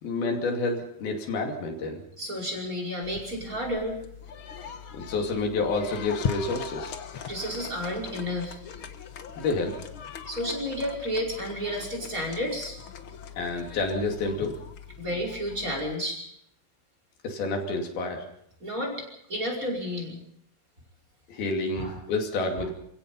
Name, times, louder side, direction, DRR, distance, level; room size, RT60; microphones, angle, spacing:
voice 1, 0.0-2.0 4.9-6.9 9.4-9.8 13.4-14.7 17.2-18.2 21.3-22.7, left 3 dB, 90° left, 2 dB, 4.6 m, -29 dB
voice 2, 2.2-4.0 7.3-8.6 10.3-12.8 15.0-16.3 18.6-20.2 21.8-21.9, equal, 20° right, 0 dB, 5.6 m, -31 dB
sound 1, 3.0-15.9, left 7 dB, 65° left, 1.3 m, -40 dB
29.0 x 16.5 x 5.5 m, 0.74 s
omnidirectional pair, 4.2 m